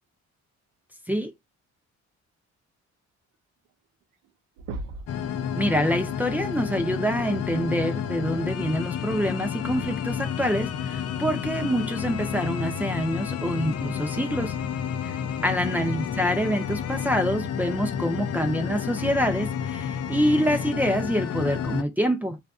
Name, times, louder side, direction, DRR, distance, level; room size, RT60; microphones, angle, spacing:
sound 1, 3.7-3.8 4.0-4.3 4.6-5.2 6.9-7.0 8.9-9.0 9.9-10.0, right 3 dB, 90° right, 0.5 m, -36 dB
sound 2, 5.1-21.8, left 8 dB, 55° left, 0.5 m, -30 dB
voice 1, 5.6-14.5 15.0-15.2 15.4-22.4, equal, 5° right, 0.6 m, -26 dB
2.5 x 2.5 x 2.3 m
cardioid pair, 90°, 30 cm